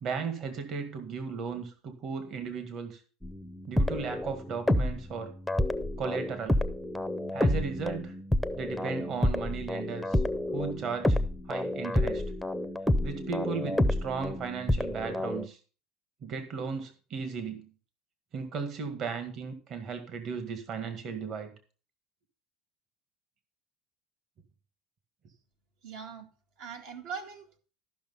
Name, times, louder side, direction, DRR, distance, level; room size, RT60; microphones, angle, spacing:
voice 1, 0.0-3.0 3.7-5.3 6.0-6.6 7.3-8.1 8.6-10.2 10.5-11.2 11.5-12.2 13.0-15.6 16.2-17.6 18.3-21.5, right 5 dB, 45° right, 7 dB, 1.8 m, -36 dB
sound 1, 3.2-5.1 5.5-15.5, left 1 dB, ahead, 0.6 m, -29 dB
voice 2, 25.8-26.3 26.6-27.6, right 6 dB, 70° right, 4 dB, 1.9 m, -41 dB
13.5 x 5.9 x 5.6 m, 0.38 s
cardioid pair, 135°, 0 cm